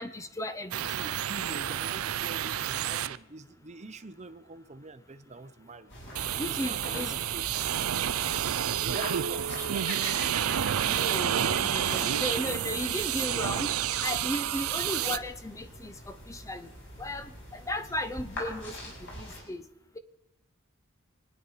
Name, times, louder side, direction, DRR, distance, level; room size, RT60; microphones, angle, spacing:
voice 1, 0.0-1.1 6.4-7.1 10.8-13.7 14.0-16.7 17.0-17.3 17.7-18.7 19.2-19.6, left 1 dB, 15° left, 11 dB, 0.7 m, -35 dB
sound 1, 0.7-3.2 6.2-15.2, right 10 dB, 85° right, 0.5 m, -30 dB
voice 2, 1.3-5.9 6.4-7.4 8.8-11.5, right 3 dB, 35° right, 12 dB, 0.8 m, -45 dB
sound 2, 5.9-19.4, equal, 60° left, 6.6 m, -44 dB
Laughter, 9.5-12.5, left 1 dB, 30° left, 3.7 m, -42 dB
25.5 x 9.7 x 5.6 m, 0.88 s
head